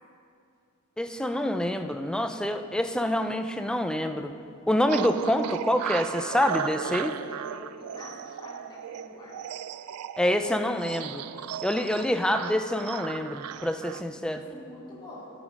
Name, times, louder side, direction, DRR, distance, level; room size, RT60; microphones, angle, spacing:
voice 1, 1.0-4.3 4.7-7.1 10.2-11.2 11.6-14.4, left 1 dB, 5° left, 7 dB, 0.3 m, -26 dB
sound 1, 4.9-14.0, right 9 dB, 90° right, 0.3 m, -36 dB
voice 2, 6.8-9.4 14.3-15.3, left 1 dB, 20° left, -7 dB, 1.4 m, -46 dB
13.0 x 5.1 x 5.1 m, 2.5 s
head